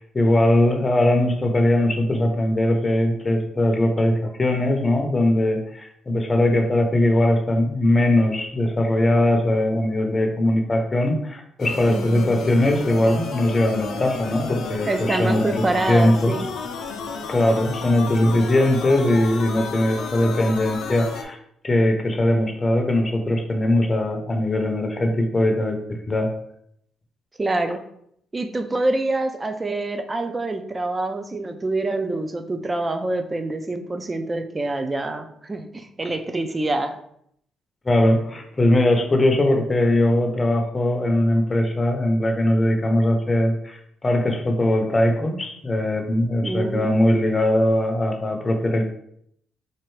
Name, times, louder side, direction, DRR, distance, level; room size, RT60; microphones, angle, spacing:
voice 1, 0.0-16.4 17.3-21.4 21.6-26.3 37.8-48.9, left 1 dB, 25° left, 4 dB, 0.6 m, -20 dB
sound 1, 11.6-21.2, left 4 dB, 75° left, 0.5 m, -32 dB
voice 2, 11.9-12.3 14.9-16.5 18.2-18.4 27.4-27.8 28.3-37.0 46.4-47.0, right 2 dB, 25° right, 7 dB, 0.5 m, -26 dB
4.3 x 2.5 x 3.1 m, 0.71 s
cardioid pair, 90°, 0 cm